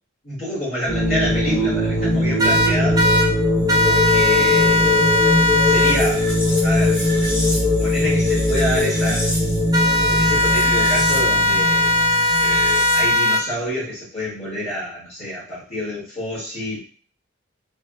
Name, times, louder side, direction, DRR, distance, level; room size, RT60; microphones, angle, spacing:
voice 1, 0.2-3.0 3.8-5.1 5.6-6.3 6.6-7.0 7.8-9.3 9.9-12.0 12.4-16.8, equal, 35° left, -8 dB, 1.3 m, -27 dB
sound 1, 0.9-13.2, left 1 dB, 10° left, 1.0 m, -20 dB
sound 2, 2.4-3.3 3.7-6.0 9.7-13.4, left 1 dB, 20° right, 0.4 m, -18 dB
3.3 x 2.0 x 2.3 m, 0.40 s
head